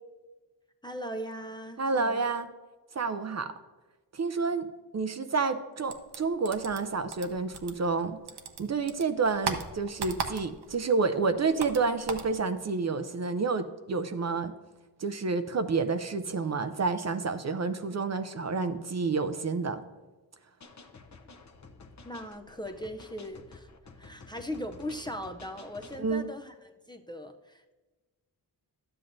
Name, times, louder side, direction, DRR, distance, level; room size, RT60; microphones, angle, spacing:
voice 1, 0.8-2.3 22.0-23.7 24.0-27.7, equal, 10° left, 4 dB, 0.5 m, -39 dB
voice 2, 1.8-2.5 2.9-3.5 4.1-4.7 4.9-8.2 8.6-14.5 15.0-19.8 26.0-26.3, right 4 dB, 40° right, 10 dB, 0.5 m, -29 dB
sound 1, 5.9-8.0 8.3-10.8 11.0-12.3, right 6 dB, 70° right, 0.8 m, -37 dB
sound 2, 20.6-26.1, left 3 dB, 45° left, 0.8 m, -51 dB
11.5 x 7.7 x 2.6 m, 1.2 s
cardioid pair, 65°, 41 cm